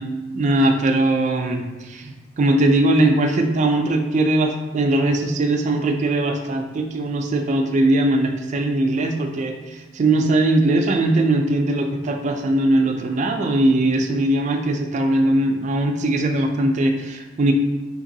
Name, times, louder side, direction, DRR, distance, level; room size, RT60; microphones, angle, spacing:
voice 1, 0.3-17.5, right 1 dB, 40° right, 4 dB, 0.3 m, -20 dB
3.8 x 2.8 x 2.7 m, 1.1 s
head